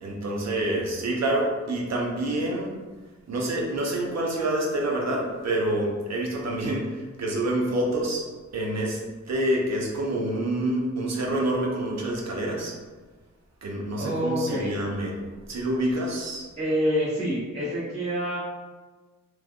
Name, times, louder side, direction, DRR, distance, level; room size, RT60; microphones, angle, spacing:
voice 1, 0.0-2.7 3.3-8.3 8.5-9.0 9.3-12.7 13.6-15.1 15.5-16.4, right 1 dB, 65° right, -2 dB, 0.7 m, -27 dB
voice 2, 14.0-14.7 16.6-18.4, equal, 25° right, -13 dB, 1.0 m, -27 dB
3.2 x 2.2 x 2.4 m, 1.3 s
wide cardioid pair, 75°, 29 cm